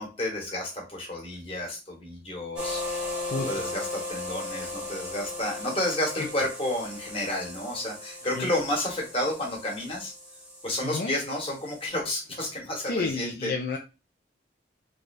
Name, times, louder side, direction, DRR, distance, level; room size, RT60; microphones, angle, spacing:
voice 1, 0.0-2.8 3.5-10.1 10.6-13.5, left 1 dB, 30° left, -1 dB, 1.3 m, -31 dB
sound 1, 2.6-11.9, left 2 dB, 5° right, 0.9 m, -37 dB
voice 2, 3.2-3.6 8.3-8.5 10.8-11.1 12.8-13.8, left 3 dB, 55° left, 2 dB, 0.4 m, -31 dB
3.4 x 2.5 x 3.2 m, 0.30 s
head